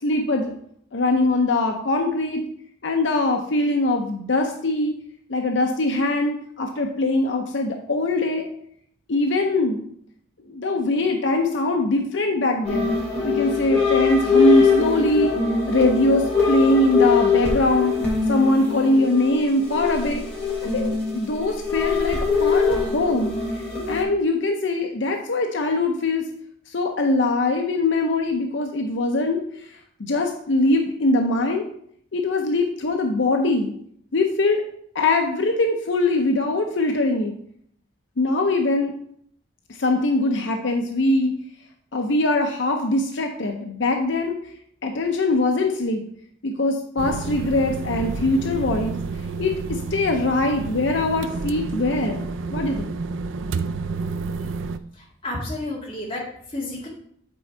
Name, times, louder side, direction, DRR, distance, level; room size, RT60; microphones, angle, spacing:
voice 1, 0.0-0.5 0.9-2.4 2.8-4.9 5.3-8.5 9.1-9.8 10.5-12.9 13.2-15.3 15.7-17.9 18.3-20.3 20.7-23.3 23.9-26.3 26.7-31.7 32.1-33.7 34.1-34.6 34.9-37.3 38.2-38.9 39.7-41.3 41.9-44.4 44.8-46.0 46.4-49.0 49.4-52.9, left 2 dB, 75° left, 3 dB, 0.7 m, -22 dB
sound 1, 12.6-24.0, left 5 dB, 5° left, 2.4 m, -22 dB
sound 2, 47.0-54.8, right 4 dB, 85° right, 0.4 m, -30 dB
voice 2, 55.0-56.9, left 1 dB, 30° left, -3 dB, 2.0 m, -31 dB
8.4 x 4.3 x 4.4 m, 0.67 s
head